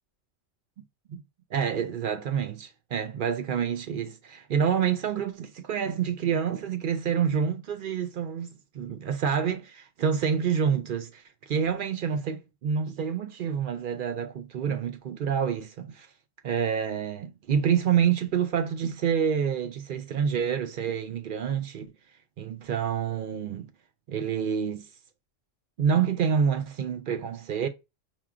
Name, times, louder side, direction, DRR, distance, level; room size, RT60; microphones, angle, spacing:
voice 1, 1.5-16.1 16.4-21.9 22.4-23.7 24.1-24.9 25.8-27.7, right 7 dB, 65° right, 0.5 m, -28 dB
5.6 x 3.0 x 2.3 m
omnidirectional pair, 1.3 m